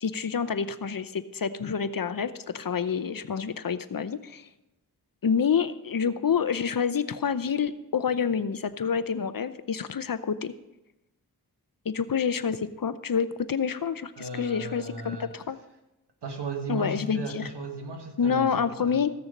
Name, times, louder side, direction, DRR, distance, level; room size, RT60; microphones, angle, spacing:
voice 1, 0.0-4.5 5.2-10.5 11.9-15.6 16.7-17.5 18.2-19.1, left 6 dB, 55° left, 13 dB, 0.7 m, -28 dB
voice 2, 14.2-15.3 16.2-19.0, right 2 dB, 90° right, 4 dB, 1.6 m, -36 dB
15.0 x 6.9 x 5.2 m, 0.95 s
wide cardioid pair, 65°, 40 cm